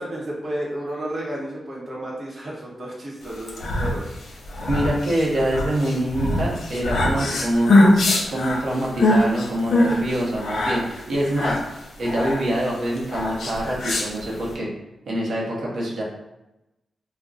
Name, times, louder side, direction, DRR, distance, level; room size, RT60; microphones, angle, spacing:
voice 1, 0.0-4.1 9.9-10.1, right 1 dB, 45° right, -4 dB, 1.0 m, -32 dB
sound 1, 3.3-14.5, left 1 dB, 80° left, 0.6 m, -22 dB
voice 2, 4.7-7.7 8.3-11.6 12.0-14.7 15.1-16.0, right 1 dB, 70° right, -4 dB, 0.9 m, -25 dB
2.4 x 2.2 x 3.8 m, 0.95 s
cardioid pair, 100°, 0 cm